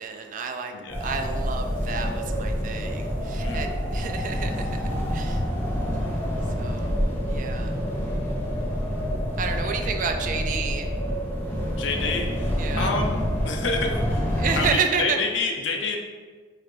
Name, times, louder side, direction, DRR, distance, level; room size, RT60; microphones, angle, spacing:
voice 1, 0.0-0.7 1.0-4.8 5.1-5.4 6.6-7.7 9.4-10.9 12.6-12.9 14.4-15.2, right 5 dB, 45° right, 6 dB, 0.3 m, -30 dB
voice 2, 0.7-1.1 3.4-3.8 9.8-10.0 11.8-14.3 14.6-16.0, left 4 dB, 85° left, 2 dB, 0.5 m, -29 dB
sound 1, 0.9-14.7, equal, 10° left, 0.5 m, -27 dB
3.1 x 2.9 x 4.4 m, 1.5 s
head